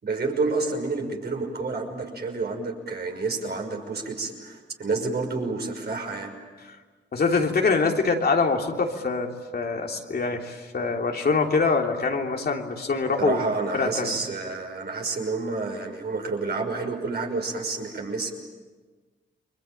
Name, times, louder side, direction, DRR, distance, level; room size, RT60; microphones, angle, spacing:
voice 1, 0.0-6.3 13.2-18.3, right 3 dB, 60° right, 2 dB, 6.0 m, -29 dB
voice 2, 7.1-13.4 13.7-14.2, left 4 dB, 55° left, 2 dB, 3.3 m, -24 dB
29.5 x 23.0 x 8.9 m, 1.3 s
cardioid pair, 70°, 19 cm